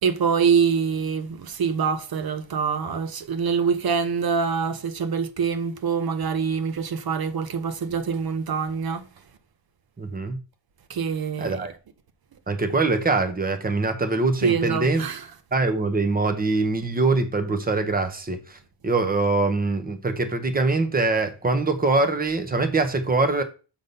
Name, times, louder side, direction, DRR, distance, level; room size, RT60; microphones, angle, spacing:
voice 1, 0.0-9.0 10.9-11.7 14.4-15.2, right 6 dB, 55° right, 0.8 m, -25 dB
voice 2, 10.0-10.4 11.4-11.7 12.5-15.1 15.5-18.6 18.8-23.4, right 3 dB, 20° right, 1.0 m, -23 dB
7.0 x 3.8 x 5.3 m
cardioid pair, 115°, 44 cm